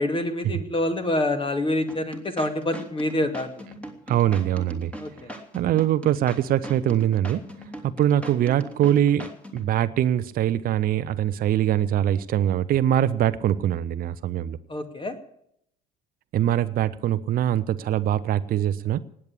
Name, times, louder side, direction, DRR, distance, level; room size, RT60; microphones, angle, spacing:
voice 1, 0.0-3.6 5.0-5.3 14.7-15.2, left 1 dB, 25° left, 9 dB, 2.4 m, -26 dB
sound 1, 1.9-9.7, right 1 dB, 5° left, 3.1 m, -39 dB
voice 2, 4.1-4.9 5.5-7.5 7.8-14.6 16.3-19.0, right 11 dB, 45° right, 13 dB, 0.8 m, -23 dB
19.0 x 8.6 x 8.4 m, 0.71 s
figure-of-eight pair, 55°, 21 cm